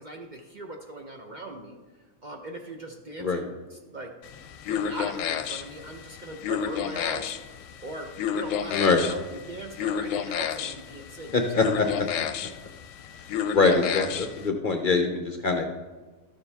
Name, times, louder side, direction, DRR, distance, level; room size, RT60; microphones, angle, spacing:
voice 1, 0.0-1.8 2.2-4.1 4.7-7.3 7.8-12.1, right 1 dB, 45° right, 3 dB, 0.7 m, -40 dB
sound 1, 4.2-14.5, left 8 dB, 75° left, 0.9 m, -31 dB
voice 2, 11.3-12.1 13.5-15.6, left 4 dB, 50° left, 4 dB, 0.7 m, -23 dB
12.0 x 7.1 x 3.4 m, 1.3 s
omnidirectional pair, 1.4 m